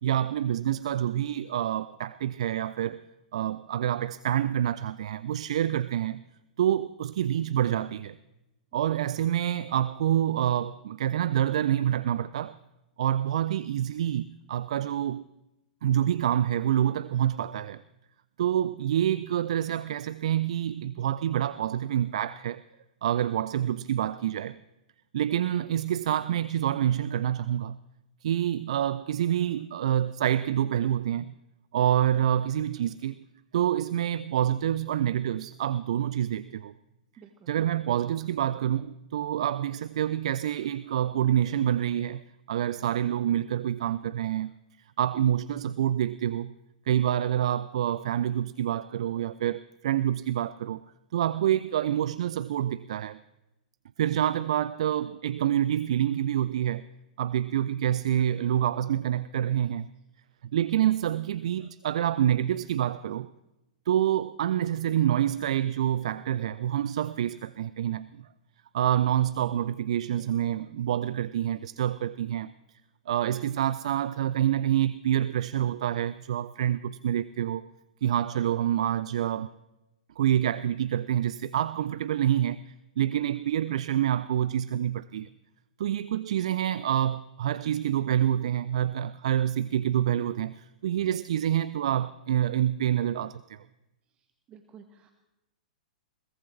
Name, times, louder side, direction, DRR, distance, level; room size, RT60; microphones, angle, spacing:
voice 1, 0.0-3.0 3.3-6.2 6.6-8.2 8.7-12.6 13.0-15.3 15.8-17.8 18.4-22.6 23.0-24.6 25.1-27.8 28.2-31.3 31.7-33.3 33.5-36.7 37.5-42.2 42.5-44.5 45.0-46.5 46.9-50.8 51.1-53.2 54.0-56.8 57.2-59.9 60.5-63.3 63.9-68.2 68.7-72.5 73.1-77.7 78.0-79.5 80.2-85.3 85.8-93.6, right 11 dB, 55° right, 0.4 m, -27 dB
voice 2, 37.2-37.5 94.5-95.1, right 7 dB, 25° right, 1.3 m, -52 dB
21.5 x 19.5 x 3.2 m
figure-of-eight pair, 105°, 4 cm